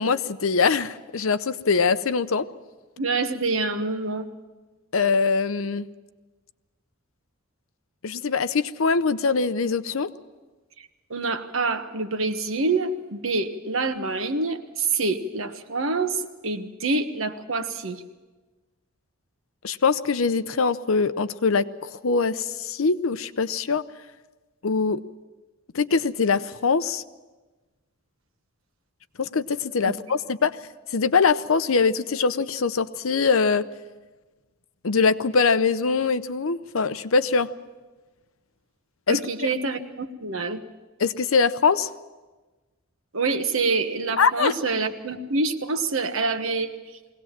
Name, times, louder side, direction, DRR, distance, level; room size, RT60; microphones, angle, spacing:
voice 1, 0.0-2.5 4.9-5.9 8.0-10.1 19.6-23.8 24.6-25.0 25.7-27.0 29.2-30.6 30.9-33.6 34.8-37.5 39.1-39.2 41.0-41.9 44.2-44.5, left 5 dB, 75° left, 13 dB, 0.7 m, -23 dB
voice 2, 3.0-4.3 11.1-18.0 29.8-29.9 39.1-40.6 43.1-46.7, right 3 dB, 70° right, 8 dB, 1.3 m, -26 dB
21.5 x 18.0 x 7.4 m, 1.2 s
head